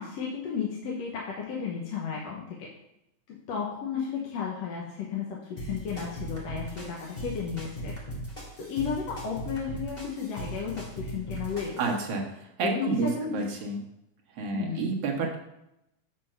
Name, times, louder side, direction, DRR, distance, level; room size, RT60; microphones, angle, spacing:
voice 1, 0.0-2.7 3.3-7.9 8.6-11.8 12.6-13.5 14.5-15.0, left 6 dB, 65° left, -2 dB, 2.2 m, -33 dB
sound 1, 5.6-11.9, right 1 dB, 15° left, 1.9 m, -39 dB
voice 2, 11.8-13.8 14.4-15.4, right 3 dB, 60° right, 1 dB, 2.2 m, -30 dB
8.9 x 4.4 x 5.5 m, 0.84 s
omnidirectional pair, 3.4 m